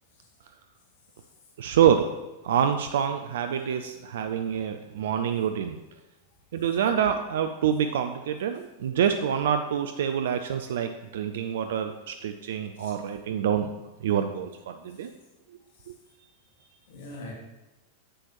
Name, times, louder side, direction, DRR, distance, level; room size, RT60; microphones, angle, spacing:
voice 1, 1.6-2.1 2.4-5.8 6.5-13.7 14.0-15.1 15.9-16.0, right 8 dB, 60° right, 7 dB, 0.5 m, -26 dB
voice 2, 16.9-17.3, left 2 dB, 55° left, -1 dB, 2.0 m, -45 dB
9.9 x 7.9 x 3.0 m, 1.1 s
figure-of-eight pair, 90°, 0 cm